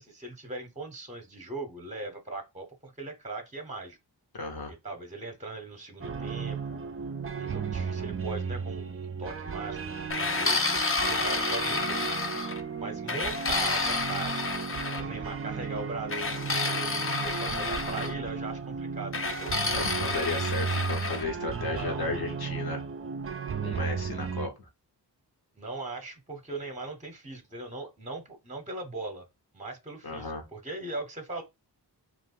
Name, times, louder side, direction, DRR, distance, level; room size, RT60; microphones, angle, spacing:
voice 1, 0.0-4.0 4.7-6.8 7.4-10.6 11.1-12.1 12.8-14.7 15.0-19.5 21.7-22.0 25.6-29.2 29.5-31.4, right 2 dB, 15° right, 0.8 m, -39 dB
voice 2, 4.3-4.7 19.7-22.8 23.6-24.5 30.0-30.4, left 3 dB, 60° left, 1.1 m, -34 dB
sound 1, 6.0-24.5, right 6 dB, 35° right, 0.4 m, -35 dB
sound 2, 10.1-12.6 13.1-15.0 16.1-18.1 19.1-21.3, left 3 dB, 30° left, 0.6 m, -30 dB
2.5 x 2.5 x 3.7 m
cardioid pair, 55°, 43 cm